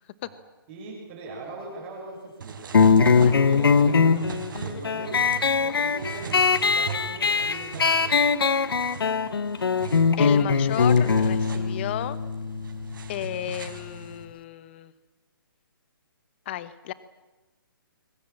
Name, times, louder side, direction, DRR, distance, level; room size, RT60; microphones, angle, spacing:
voice 1, 0.7-2.8 3.4-4.3 4.6-5.3 5.6-8.2, right 2 dB, 25° right, -2 dB, 7.1 m, -40 dB
sound 1, 2.4-14.2, right 6 dB, 60° right, 4.3 m, -40 dB
sound 2, 2.7-13.9, left 5 dB, 80° left, 1.5 m, -22 dB
voice 2, 10.2-12.2 13.1-14.9 16.5-16.9, left 13 dB, 30° left, 15 dB, 1.1 m, -33 dB
23.0 x 20.0 x 8.7 m, 1.1 s
hypercardioid pair, 165°, 12 cm